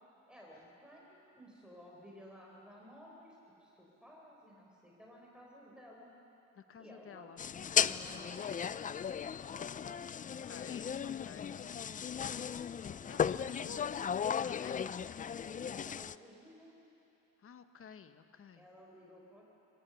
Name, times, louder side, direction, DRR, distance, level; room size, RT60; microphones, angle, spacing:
voice 1, 0.3-6.1 6.8-7.3 7.8-9.1 15.4-16.7 18.6-19.4, equal, 5° right, -3 dB, 4.0 m, -56 dB
voice 2, 6.5-7.4 10.4-12.5 13.1-13.8 14.4-15.0 17.4-18.7, left 7 dB, 45° left, 9 dB, 1.1 m, -52 dB
sound 1, 7.4-16.1, left 7 dB, 30° left, 0.3 m, -36 dB
23.5 x 16.0 x 7.0 m, 2.9 s
cardioid pair, 90°, 30 cm